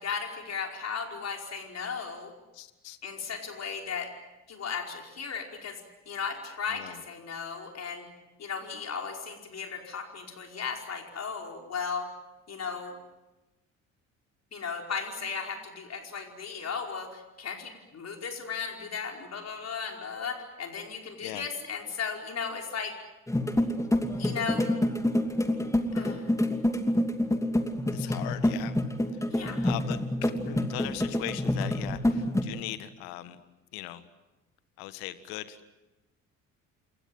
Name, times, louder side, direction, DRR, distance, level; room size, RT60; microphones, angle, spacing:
voice 1, 0.0-2.3 3.0-4.1 4.5-5.8 6.1-8.1 8.4-12.1 12.5-12.9 14.5-22.9 24.2-24.7 25.9-26.3 29.3-29.7, left 6 dB, 40° left, 2 dB, 5.0 m, -36 dB
voice 2, 2.5-3.0 6.7-7.0 21.2-21.5 27.9-28.7 29.6-33.4 33.7-34.0 34.8-35.6, left 15 dB, 65° left, 13 dB, 1.7 m, -39 dB
sound 1, 23.3-32.4, left 1 dB, 5° left, 2.7 m, -27 dB
28.0 x 23.0 x 7.8 m, 1.1 s
figure-of-eight pair, 50°, 41 cm